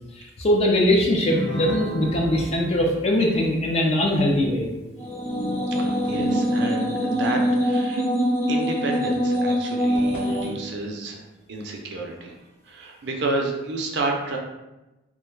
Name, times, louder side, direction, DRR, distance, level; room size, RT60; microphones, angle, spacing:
voice 1, 0.2-4.7, left 1 dB, 30° left, -1 dB, 0.4 m, -21 dB
Guitar, 1.3-5.9, right 2 dB, 65° left, 0.9 m, -36 dB
sound 1, 5.0-10.5, equal, 10° left, 0.7 m, -23 dB
voice 2, 5.8-8.0 8.5-11.2 11.5-12.4 12.7-14.4, right 2 dB, 60° right, 1 dB, 0.4 m, -30 dB
2.3 x 2.2 x 3.1 m, 1.0 s
head